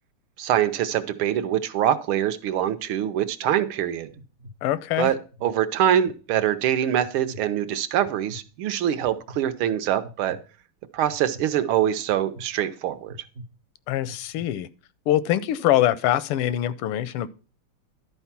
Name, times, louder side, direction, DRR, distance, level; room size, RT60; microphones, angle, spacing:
voice 1, 0.4-4.1 5.0-10.4 10.9-13.2, right 10 dB, 75° right, 1.6 m, -24 dB
sound 1, 3.2-3.5 4.1-4.5 5.1-5.5 6.0-6.5 7.0-7.4 8.0-8.4 9.0-9.4 10.0-10.4 11.1-11.4 12.1-12.4 13.1-13.4 14.0-14.4, equal, 45° right, 0.9 m, -43 dB
voice 2, 4.6-5.1 13.9-14.7 15.1-17.3, left 13 dB, 85° left, 1.5 m, -23 dB
11.5 x 4.5 x 5.8 m
omnidirectional pair, 2.4 m